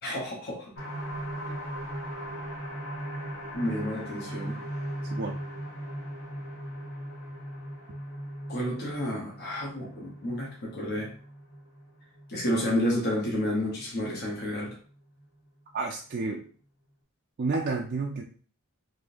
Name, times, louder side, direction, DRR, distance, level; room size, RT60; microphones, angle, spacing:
voice 1, 0.0-0.7 1.4-1.6 3.5-4.6 8.5-11.1 12.3-14.8, left 1 dB, 45° left, -3 dB, 0.8 m, -30 dB
sound 1, 0.8-14.2 14.7-14.8 15.2-15.3, right 1 dB, 70° left, 1.2 m, -38 dB
voice 2, 15.7-16.4 17.4-18.2, right 3 dB, 45° right, 0 dB, 0.3 m, -30 dB
3.5 x 2.7 x 2.5 m, 0.43 s
head